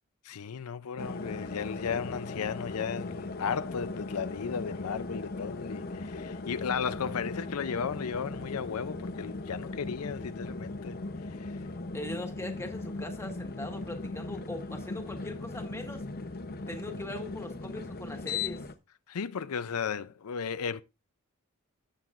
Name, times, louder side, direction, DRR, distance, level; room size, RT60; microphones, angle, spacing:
voice 1, 0.2-11.0 11.4-11.5 19.1-20.8, left 6 dB, 85° left, 0.5 m, -35 dB
sound 1, 1.0-18.7, left 3 dB, 45° left, 0.8 m, -38 dB
voice 2, 11.9-16.0 16.7-18.6, left 1 dB, 10° left, 1.6 m, -40 dB
18.0 x 7.8 x 2.5 m
head